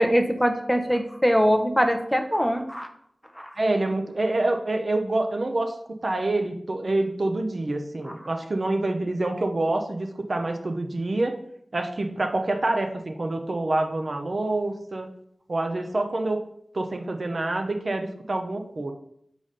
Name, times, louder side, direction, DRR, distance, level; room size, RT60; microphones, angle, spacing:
voice 1, 0.0-2.9 3.3-3.6 8.1-8.2, equal, 5° left, 6 dB, 0.6 m, -22 dB
voice 2, 3.6-5.7 6.0-11.4 11.7-15.1 15.5-16.4 16.7-18.9, right 2 dB, 60° right, 5 dB, 0.7 m, -26 dB
4.9 x 4.2 x 5.0 m, 0.70 s
wide cardioid pair, 65°, 0 cm